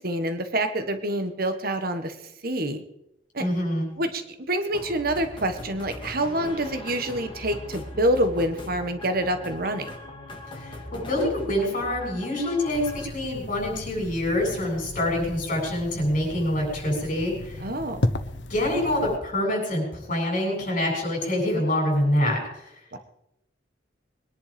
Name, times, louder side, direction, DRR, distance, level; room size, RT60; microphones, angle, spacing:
voice 1, 0.0-2.2 2.4-2.8 3.3-3.4 4.0-9.9 17.6-18.1 22.9-23.0, right 1 dB, 55° right, 9 dB, 1.5 m, -27 dB
voice 2, 3.4-3.9 10.5-17.6 18.5-22.7, left 1 dB, 45° left, 0 dB, 7.7 m, -26 dB
sound 1, 4.7-13.1, left 1 dB, 25° left, 2.8 m, -40 dB
sound 2, 12.7-19.2, left 1 dB, 75° left, 1.2 m, -34 dB
22.0 x 10.5 x 5.2 m, 0.81 s
head